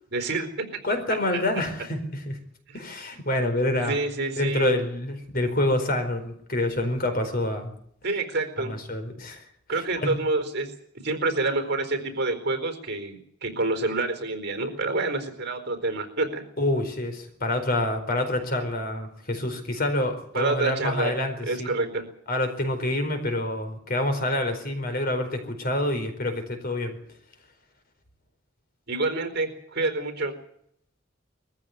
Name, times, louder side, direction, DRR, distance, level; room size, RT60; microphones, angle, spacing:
voice 1, 0.1-0.7 1.3-1.4 2.7-2.8 3.8-4.8 8.0-8.7 9.7-10.7 11.0-16.4 20.3-21.1 21.4-22.0 28.9-30.3, right 2 dB, 55° right, 7 dB, 4.3 m, -27 dB
voice 2, 0.8-2.4 2.7-4.0 4.4-7.7 8.6-9.4 9.7-10.1 16.6-21.7 22.3-27.0, left 1 dB, 50° left, 6 dB, 4.5 m, -27 dB
21.5 x 15.0 x 9.6 m, 0.69 s
head